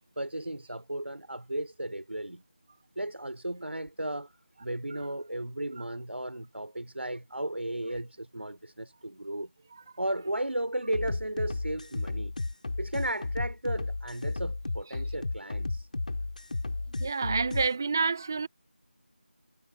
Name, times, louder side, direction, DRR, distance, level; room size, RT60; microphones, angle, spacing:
voice 1, 0.2-2.4 3.0-4.3 4.6-9.5 10.0-12.4 12.8-15.9, right 1 dB, 85° right, 3.9 m, -35 dB
sound 1, 10.9-17.7, left 2 dB, 45° left, 3.4 m, -33 dB
voice 2, 17.0-18.5, right 4 dB, 15° right, 0.6 m, -28 dB
figure-of-eight pair, 170°, 6 cm